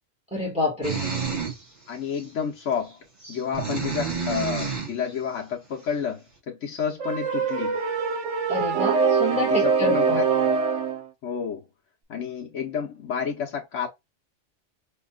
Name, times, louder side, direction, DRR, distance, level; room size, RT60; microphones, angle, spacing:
voice 1, 0.3-1.1 8.5-10.2, left 2 dB, 5° right, 1.9 m, -27 dB
sound 1, 0.8-1.6 2.2-2.3 3.2-4.9, right 5 dB, 40° right, 2.7 m, -29 dB
voice 2, 1.9-3.0 3.3-7.8 9.3-10.2 11.2-11.7 12.1-13.9, left 7 dB, 80° left, 1.2 m, -30 dB
sound 2, 7.0-11.0, right 5 dB, 75° right, 1.2 m, -23 dB
5.2 x 2.9 x 2.3 m
omnidirectional pair, 1.3 m